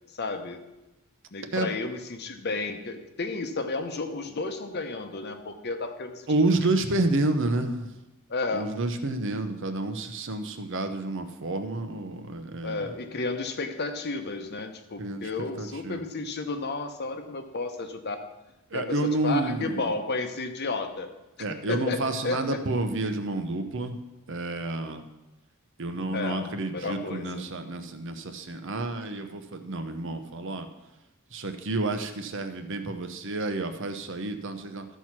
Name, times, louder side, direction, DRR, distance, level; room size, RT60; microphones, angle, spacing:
voice 1, 0.1-0.6 1.3-6.3 8.3-8.7 12.6-18.3 18.7-21.1 21.7-22.6 26.1-27.5, left 3 dB, 50° left, 7 dB, 0.9 m, -32 dB
voice 2, 6.3-7.9 8.5-12.8 15.0-15.3 15.6-16.0 18.7-19.9 21.4-24.0 24.3-25.1 25.8-30.7 31.3-34.9, right 2 dB, 60° right, 7 dB, 0.9 m, -29 dB
13.5 x 4.6 x 5.9 m, 1.0 s
head